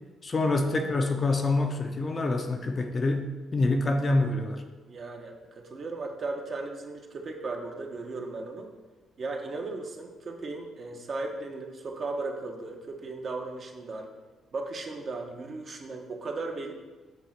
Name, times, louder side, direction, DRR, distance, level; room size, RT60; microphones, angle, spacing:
voice 1, 0.2-4.6, left 2 dB, 35° left, 5 dB, 0.7 m, -26 dB
voice 2, 4.9-8.7 9.2-14.1 14.5-16.7, right 3 dB, 50° right, 2 dB, 1.0 m, -36 dB
7.3 x 3.1 x 5.9 m, 1.2 s
cardioid pair, 90°, 0 cm